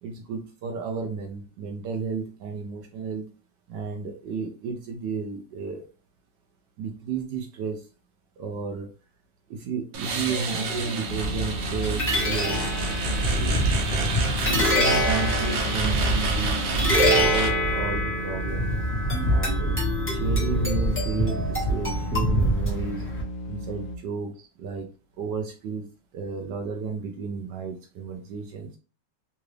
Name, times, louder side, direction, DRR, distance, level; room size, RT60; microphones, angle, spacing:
voice 1, 0.0-3.3 3.7-5.8 6.8-7.9 8.4-8.9 9.5-12.6 13.3-13.7 14.4-18.7 19.2-19.8 20.1-23.0 23.5-24.9 25.2-25.8 26.1-28.8, right 5 dB, 70° right, 3 dB, 1.2 m, -32 dB
sound 1, 9.9-17.5, right 4 dB, 90° right, 1.6 m, -30 dB
sound 2, 11.1-24.0, equal, 80° left, 1.2 m, -36 dB
sound 3, 11.1-23.2, equal, 10° left, 1.1 m, -25 dB
3.8 x 2.4 x 3.2 m, 0.37 s
omnidirectional pair, 2.1 m